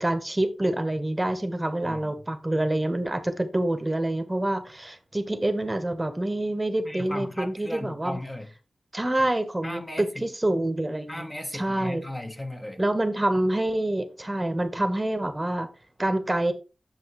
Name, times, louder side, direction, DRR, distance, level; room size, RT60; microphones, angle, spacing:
voice 1, 0.0-8.2 8.9-11.2 11.5-12.0 12.8-15.7 16.0-16.5, right 1 dB, 15° right, 1.1 m, -27 dB
voice 2, 1.8-2.1 6.8-8.5 9.6-10.3 11.1-12.8, left 1 dB, 20° left, 1.1 m, -36 dB
10.5 x 6.5 x 3.1 m
wide cardioid pair, 95°, 0 cm